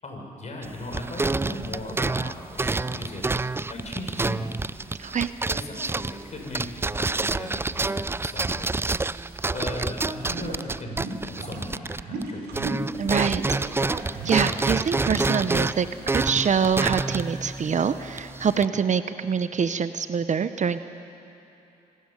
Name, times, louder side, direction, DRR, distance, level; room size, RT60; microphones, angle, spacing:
voice 1, 0.0-3.2 3.7-4.5 5.5-8.9 9.5-11.0 11.2-12.5, left 1 dB, 45° left, 1 dB, 6.2 m, -37 dB
sound 1, 0.6-12.3 12.5-18.7, right 3 dB, 15° right, 0.4 m, -28 dB
sound 2, 10.3-15.7, right 3 dB, 75° right, 3.7 m, -35 dB
voice 2, 13.0-13.6 14.2-20.8, right 6 dB, 45° right, 12 dB, 0.9 m, -25 dB
24.5 x 13.0 x 9.8 m, 2.9 s
supercardioid pair, 60°, 17 cm